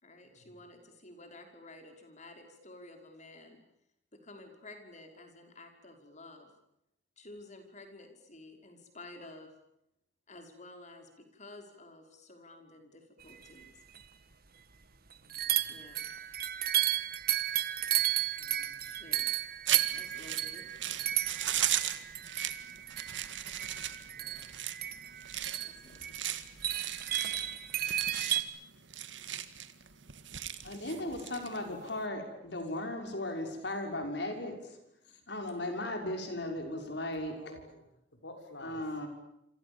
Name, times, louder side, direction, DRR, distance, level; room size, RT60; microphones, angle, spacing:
voice 1, 0.0-3.6 4.1-6.5 7.2-9.5 10.3-13.7 15.7-16.1 18.8-19.3 19.9-20.7 25.6-26.3, left 2 dB, 40° left, 5 dB, 5.6 m, -52 dB
sound 1, 13.6-13.7 13.9-14.0 15.3-28.4, right 12 dB, 55° right, 1.7 m, -33 dB
voice 2, 15.2-15.6 18.4-19.0 24.1-24.5 37.3-37.8 38.2-38.8, left 1 dB, 85° left, 6 dB, 6.6 m, -51 dB
sound 2, 19.7-32.0, right 11 dB, 85° right, 2.0 m, -37 dB
voice 3, 30.6-34.8 35.3-37.6 38.6-39.1, left 1 dB, 65° left, 4 dB, 6.1 m, -37 dB
28.0 x 27.5 x 7.3 m, 0.81 s
head